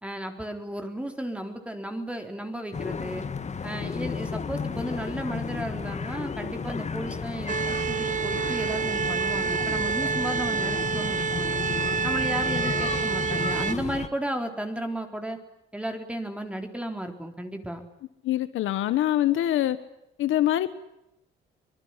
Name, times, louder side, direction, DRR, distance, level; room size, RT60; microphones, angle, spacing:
voice 1, 0.0-3.3 3.6-7.6 7.9-11.6 12.0-15.4 15.7-17.8, right 1 dB, 5° right, 5 dB, 3.9 m, -34 dB
sound 1, 2.7-14.1, left 5 dB, 35° left, 1.9 m, -33 dB
sound 2, 7.5-13.7, right 6 dB, 40° right, 1.1 m, -28 dB
voice 2, 18.2-19.8 20.2-20.7, left 13 dB, 80° left, 13 dB, 1.3 m, -24 dB
25.5 x 20.0 x 9.8 m, 0.85 s
cardioid pair, 90°, 20 cm